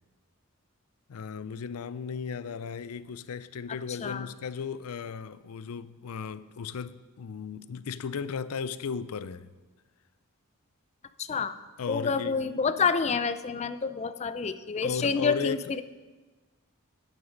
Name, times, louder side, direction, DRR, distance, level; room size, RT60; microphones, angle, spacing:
voice 1, 1.1-9.5 11.8-12.4 14.8-15.8, left 6 dB, 85° left, 0.5 m, -35 dB
voice 2, 3.9-4.3 11.2-11.5 11.9-15.8, left 5 dB, 30° left, 0.4 m, -28 dB
10.0 x 8.9 x 5.2 m
head